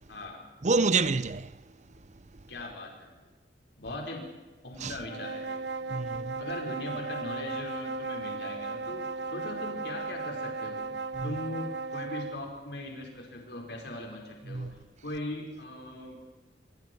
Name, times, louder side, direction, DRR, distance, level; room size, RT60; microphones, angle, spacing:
voice 1, 0.1-0.4 2.5-3.2 3.8-4.3 4.6-5.6 6.4-10.9 11.2-16.3, left 1 dB, 70° left, 5.1 m, -40 dB
voice 2, 0.6-1.6 4.8-4.9 5.9-6.4 11.2-11.3 14.5-14.7, right 4 dB, 40° right, 0.6 m, -28 dB
sound 1, 5.0-12.4, right 4 dB, 75° right, 0.8 m, -36 dB
27.0 x 24.5 x 4.7 m
head